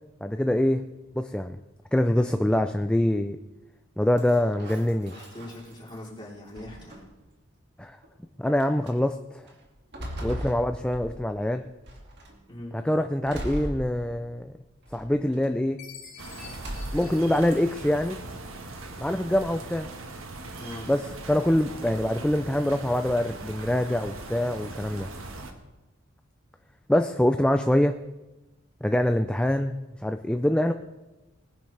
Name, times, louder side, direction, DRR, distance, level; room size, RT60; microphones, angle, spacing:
voice 1, 0.2-0.8 1.1-1.6 1.9-3.4 4.0-5.1 7.8-8.0 8.4-9.4 10.2-11.7 12.7-14.5 14.9-15.8 16.9-18.2 19.0-19.9 20.9-25.1 26.9-28.0 28.8-30.7, left 1 dB, 5° left, 7 dB, 0.4 m, -24 dB
sound 1, 4.2-6.1 6.5-7.3 8.0-8.1 8.6-8.9 9.5-11.4 11.9-12.4 13.3-14.4 14.9-15.5 16.4-17.3, right 1 dB, 55° right, 2.2 m, -38 dB
voice 2, 5.1-7.1 12.5-12.8 20.6-20.9, left 1 dB, 20° left, -6 dB, 3.6 m, -41 dB
Chime, 15.8-18.3, left 7 dB, 45° left, 2.8 m, -48 dB
sound 2, 16.2-25.5, right 2 dB, 75° right, 1.4 m, -40 dB
20.0 x 10.5 x 3.3 m, 1.1 s
head